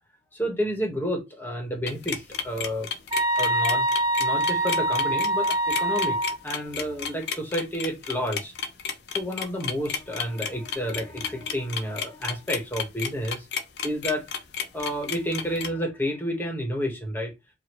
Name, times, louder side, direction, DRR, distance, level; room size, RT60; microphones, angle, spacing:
voice 1, 0.3-2.9 3.4-3.9 4.2-6.2 6.4-8.5 9.1-13.5 13.8-14.2 14.7-17.3, equal, 10° left, 1.3 m, -30 dB
sound 1, 1.9-15.7, left 7 dB, 65° left, 0.6 m, -32 dB
sound 2, 3.1-6.4, right 1 dB, 20° right, 1.2 m, -24 dB
4.8 x 2.8 x 3.0 m
head